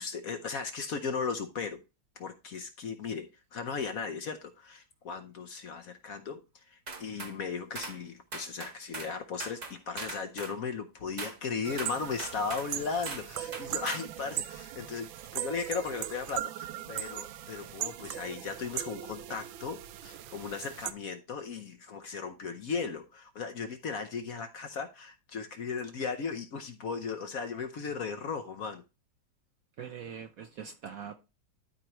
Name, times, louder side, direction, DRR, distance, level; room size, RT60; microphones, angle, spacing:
voice 1, 0.0-1.8 2.2-28.8, left 5 dB, 60° left, 1.0 m, -37 dB
sound 1, 6.9-7.4 7.8-8.0 8.3-9.1 9.4-10.6 11.2-11.4 11.8-12.7 13.1-13.3 13.5-14.1, right 3 dB, 30° right, 0.8 m, -40 dB
sound 2, 11.6-20.9, right 12 dB, 90° right, 1.4 m, -39 dB
voice 2, 29.8-31.1, right 7 dB, 65° right, 0.9 m, -42 dB
12.5 x 4.5 x 3.0 m
omnidirectional pair, 2.1 m